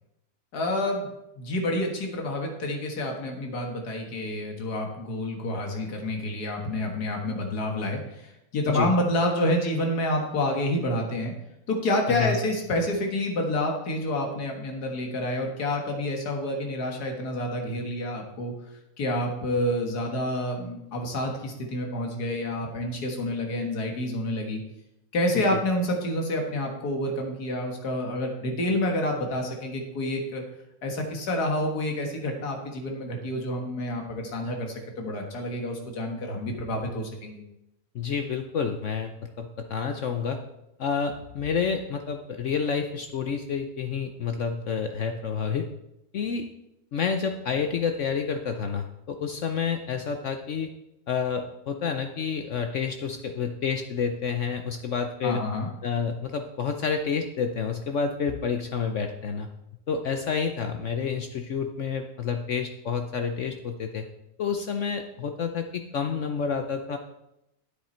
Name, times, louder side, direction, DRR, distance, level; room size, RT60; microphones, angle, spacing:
voice 1, 0.5-11.3 11.7-18.5 19.0-24.6 25.1-30.4 30.8-37.4 55.2-55.7, left 1 dB, 90° left, 2 dB, 2.1 m, -28 dB
voice 2, 37.9-40.4 40.8-45.7 46.1-46.5 46.9-50.7 51.1-55.4 55.8-59.5 59.9-64.1 64.4-67.0, left 6 dB, 60° left, 6 dB, 0.9 m, -29 dB
10.0 x 8.4 x 4.4 m, 0.87 s
omnidirectional pair, 1.6 m